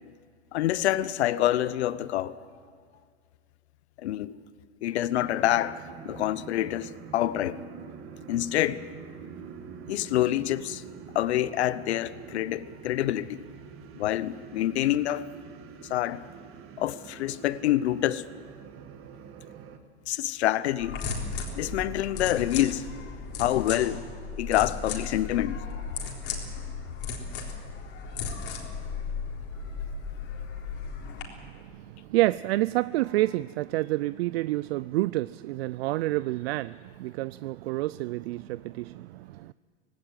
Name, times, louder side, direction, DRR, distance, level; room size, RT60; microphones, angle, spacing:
voice 1, 0.5-2.4 4.0-4.4 4.8-7.6 8.3-8.9 9.9-10.8 11.1-13.4 13.9-15.3 15.8-16.3 16.8-18.3 20.1-21.0 21.6-22.8 23.4-24.0 24.4-25.6, left 13 dB, 75° left, 0.9 m, -27 dB
sound 1, 5.2-19.8, right 7 dB, 40° right, 1.7 m, -46 dB
sound 2, 20.8-31.2, left 5 dB, 45° left, 3.9 m, -35 dB
voice 2, 31.4-39.5, right 18 dB, 65° right, 0.5 m, -29 dB
18.0 x 17.0 x 9.3 m
hypercardioid pair, 115°, 33 cm